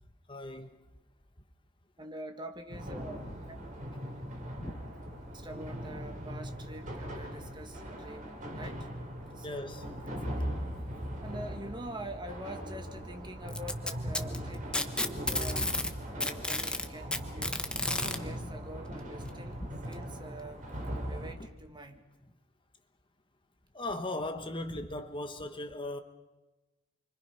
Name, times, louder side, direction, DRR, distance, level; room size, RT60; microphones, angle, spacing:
voice 1, 0.3-0.8 4.6-4.7 9.4-9.9 17.7-17.8 19.6-19.7 23.7-26.0, left 1 dB, 25° left, 1.2 m, -38 dB
voice 2, 2.0-3.7 5.3-8.9 9.3-9.7 10.0-10.1 11.2-15.7 16.1-17.7 18.1-20.6 21.1-22.0, right 1 dB, 25° right, 2.0 m, -45 dB
sound 1, 2.7-21.3, equal, 40° right, 4.4 m, -40 dB
Packing tape duct tape, 13.5-15.9 16.2-18.2 19.3-19.4 19.9-20.0 20.9-21.0, left 1 dB, 5° left, 1.3 m, -32 dB
29.5 x 24.0 x 5.7 m
head